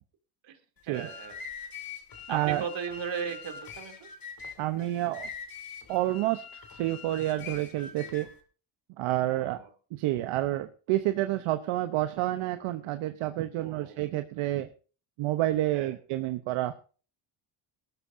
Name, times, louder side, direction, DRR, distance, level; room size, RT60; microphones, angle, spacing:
sound 1, 0.8-8.4, left 6 dB, 45° left, 3.1 m, -44 dB
voice 1, 0.8-1.4 2.3-4.1 9.4-9.7 13.6-14.0 15.7-15.9, right 7 dB, 65° right, 6 dB, 2.8 m, -36 dB
voice 2, 2.3-2.6 4.6-5.3 5.9-8.3 9.0-9.6 9.9-14.7 15.2-16.8, right 15 dB, 85° right, 10 dB, 0.9 m, -29 dB
19.0 x 13.5 x 2.6 m, 0.38 s
cardioid pair, 85°, 48 cm